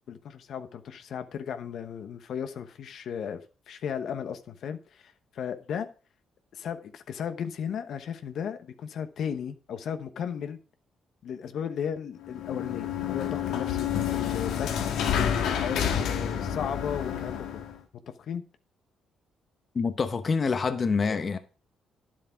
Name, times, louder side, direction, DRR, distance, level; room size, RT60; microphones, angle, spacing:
voice 1, 0.1-3.4 3.7-5.9 6.5-10.6 11.2-17.5 18.2-18.4, left 8 dB, 70° left, 1.0 m, -35 dB
sound 1, 12.2-17.7, left 8 dB, 85° left, 1.8 m, -29 dB
voice 2, 19.7-21.4, left 5 dB, 40° left, 0.9 m, -26 dB
10.0 x 7.5 x 4.6 m
cardioid pair, 90°, 0 cm